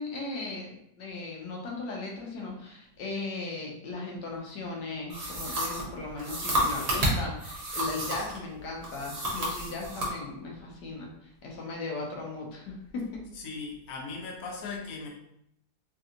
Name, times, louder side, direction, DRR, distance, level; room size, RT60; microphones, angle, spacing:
voice 1, 0.0-13.2, left 3 dB, 85° left, -1 dB, 1.3 m, -37 dB
sound 1, 5.1-8.4 8.8-10.1, equal, 45° right, 0.5 m, -30 dB
voice 2, 13.3-15.1, left 4 dB, 65° left, 0 dB, 1.1 m, -38 dB
3.3 x 2.7 x 2.4 m, 0.80 s
omnidirectional pair, 1.8 m